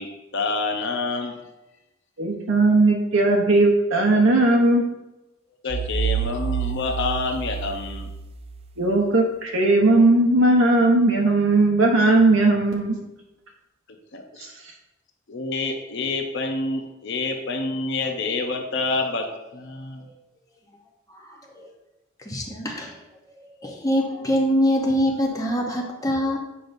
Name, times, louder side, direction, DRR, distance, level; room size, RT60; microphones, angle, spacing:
voice 1, 0.0-1.4 5.6-8.1 14.1-14.5 15.3-19.3 19.5-20.0, left 3 dB, 65° left, 4 dB, 0.7 m, -27 dB
voice 2, 2.2-4.9 8.8-13.0 14.4-14.5, right 2 dB, 70° right, 0 dB, 0.8 m, -18 dB
sound 1, 5.7-8.6, right 7 dB, 30° right, 0.3 m, -28 dB
voice 3, 21.1-21.7 22.2-23.0 23.4-26.4, equal, 15° left, 0 dB, 0.9 m, -24 dB
7.7 x 5.2 x 2.6 m, 0.98 s
head